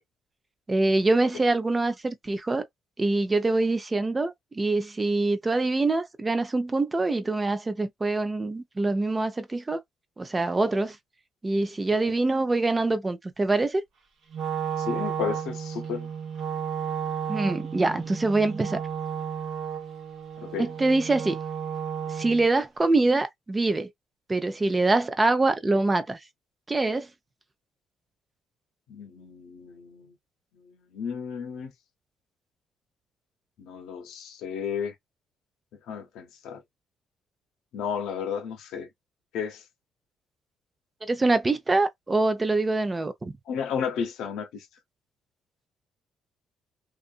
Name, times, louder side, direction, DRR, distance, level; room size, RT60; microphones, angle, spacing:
voice 1, 0.7-2.7 3.0-9.8 10.2-11.0 11.4-13.8 17.3-18.8 20.6-21.4 22.1-23.9 24.3-26.2 26.7-27.1 41.0-43.4, right 2 dB, 25° right, 0.5 m, -24 dB
Wind instrument woodwind instrument, 14.3-22.5, right 8 dB, 65° right, 1.0 m, -33 dB
voice 2, 14.8-16.1 20.4-20.7 28.9-30.1 30.6-31.7 33.6-34.9 35.9-36.6 37.7-38.9 39.3-39.6 43.5-44.7, left 7 dB, 85° left, 0.8 m, -33 dB
2.5 x 2.4 x 2.4 m
cardioid pair, 90°, 0 cm